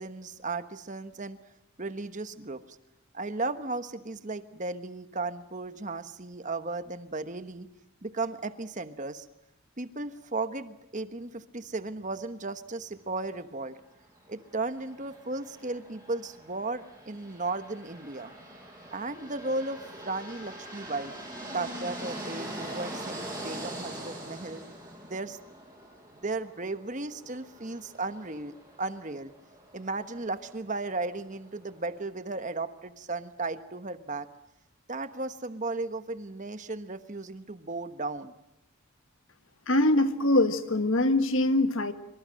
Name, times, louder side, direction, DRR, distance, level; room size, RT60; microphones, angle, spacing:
voice 1, 0.0-1.4 1.8-2.8 3.1-7.7 8.0-9.3 9.8-13.8 14.3-18.3 18.9-21.1 21.5-24.6 25.0-25.4 26.1-29.3 29.7-34.3 34.9-38.3, right 3 dB, 35° right, 10 dB, 1.2 m, -35 dB
sound 1, 14.4-32.0, right 1 dB, 15° right, 6.0 m, -43 dB
voice 2, 39.7-41.9, left 1 dB, 60° left, 9 dB, 1.7 m, -23 dB
25.5 x 24.5 x 7.7 m, 0.85 s
head